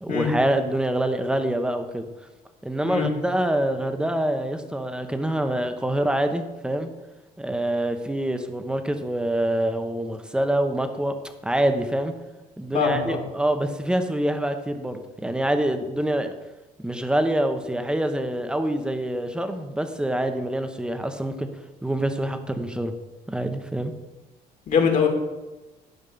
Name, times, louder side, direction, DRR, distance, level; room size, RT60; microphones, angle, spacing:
voice 1, 0.0-2.1 2.6-6.9 7.4-11.2 11.4-12.1 12.6-16.3 16.8-21.5 21.8-22.9 23.3-23.9, right 1 dB, 5° right, 7 dB, 1.0 m, -25 dB
voice 2, 12.7-13.2 24.7-25.1, left 6 dB, 50° left, 2 dB, 2.2 m, -22 dB
11.5 x 5.4 x 5.5 m, 1.1 s
cardioid pair, 110°, 17 cm